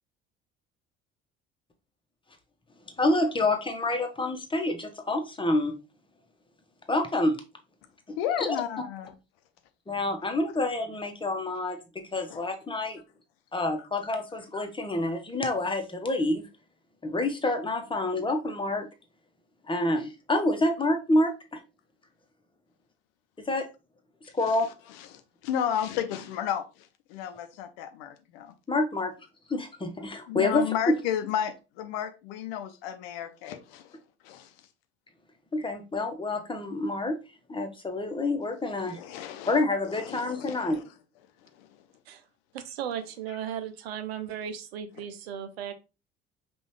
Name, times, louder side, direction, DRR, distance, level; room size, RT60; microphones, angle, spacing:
voice 1, 3.0-5.8 6.9-7.4 8.4-8.5 9.9-11.8 12.1-13.0 13.5-16.5 17.0-18.9 19.7-21.6 23.4-23.6 24.3-24.7 28.7-29.1 29.5-30.9 35.5-37.1 37.5-39.0 39.5-40.8, left 2 dB, 15° left, 1.1 m, -27 dB
voice 2, 8.2-9.1 12.3-12.4 24.2-24.6 24.9-28.5 30.3-34.0 34.2-34.5 38.8-40.8 41.5-41.8, left 9 dB, 65° left, 0.7 m, -33 dB
voice 3, 42.5-45.7, right 9 dB, 75° right, 0.6 m, -36 dB
5.3 x 2.6 x 3.1 m
figure-of-eight pair, 55°, 31 cm